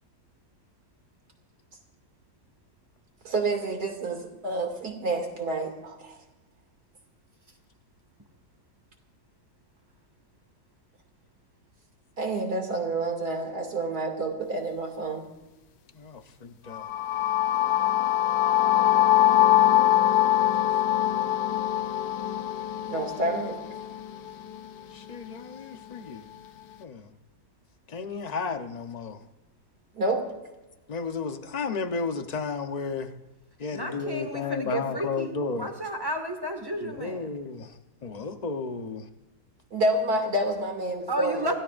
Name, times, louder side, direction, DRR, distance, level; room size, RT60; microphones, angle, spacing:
voice 1, 3.2-6.2 12.2-15.3 22.9-23.6 29.9-30.2 39.7-41.5, right 2 dB, 70° right, 3 dB, 3.1 m, -28 dB
sound 1, 16.7-24.6, left 12 dB, 75° left, 1.3 m, -23 dB
voice 2, 20.3-21.3 24.9-26.2 26.8-27.1 27.9-29.2 30.9-33.1 33.6-35.7 36.8-37.7 38.0-39.1, left 4 dB, 30° left, 6 dB, 0.9 m, -33 dB
voice 3, 33.7-37.3 41.1-41.6, equal, 15° right, 5 dB, 1.8 m, -32 dB
27.0 x 17.0 x 2.6 m, 1.1 s
omnidirectional pair, 1.8 m